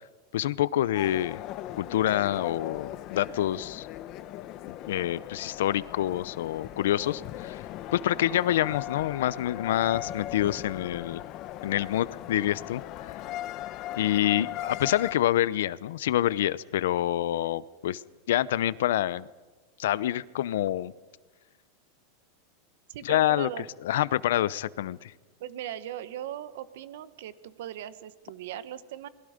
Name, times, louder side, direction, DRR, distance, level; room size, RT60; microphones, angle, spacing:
voice 1, 0.3-1.4 1.8-3.9 4.9-7.6 7.9-11.2 11.6-13.2 14.0-18.0 18.3-19.3 19.8-20.9 23.0-25.1, left 13 dB, 80° left, 19 dB, 0.7 m, -27 dB
sound 1, 0.9-15.1, left 13 dB, 40° left, 0.9 m, -39 dB
voice 2, 22.9-23.7 25.4-29.1, right 11 dB, 70° right, 13 dB, 1.3 m, -39 dB
28.5 x 21.5 x 5.2 m, 1.3 s
supercardioid pair, 145°, 0 cm